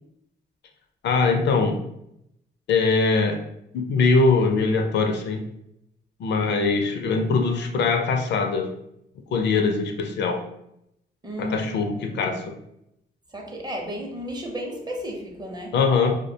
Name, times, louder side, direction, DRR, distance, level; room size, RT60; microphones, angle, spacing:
voice 1, 1.0-1.8 2.7-3.4 3.7-5.4 6.2-8.7 9.3-10.4 11.4-12.4 15.7-16.1, left 4 dB, 60° left, 5 dB, 0.4 m, -22 dB
voice 2, 11.2-12.4 13.3-15.7, equal, 20° right, 1 dB, 0.6 m, -33 dB
2.3 x 2.1 x 2.6 m, 0.79 s
cardioid pair, 90°, 20 cm